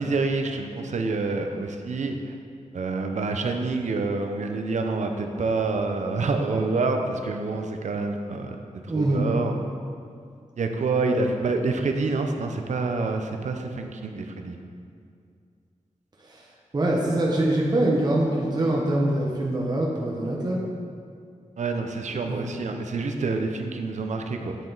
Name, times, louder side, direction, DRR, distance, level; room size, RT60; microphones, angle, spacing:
voice 1, 0.0-2.2 2.7-8.6 8.8-9.5 10.6-14.6 21.6-24.6, right 3 dB, 70° right, 4 dB, 0.8 m, -27 dB
voice 2, 8.9-9.3 11.0-11.2 16.2-16.4 16.7-20.6 22.3-22.5, right 1 dB, 35° right, -3 dB, 1.1 m, -24 dB
9.1 x 7.5 x 4.0 m, 2.3 s
wide cardioid pair, 140°, 13 cm